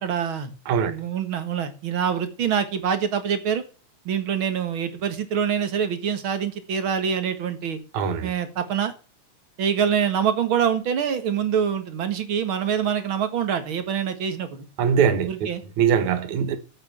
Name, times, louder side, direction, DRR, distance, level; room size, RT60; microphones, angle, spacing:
voice 1, 0.0-0.5 0.8-3.6 4.1-7.8 8.2-8.9 9.6-14.7 15.2-15.6, right 8 dB, 50° right, 2.2 m, -25 dB
voice 2, 7.9-8.3 14.8-15.3 15.8-16.6, right 7 dB, 80° right, 2.7 m, -21 dB
10.5 x 8.0 x 7.2 m
omnidirectional pair, 3.3 m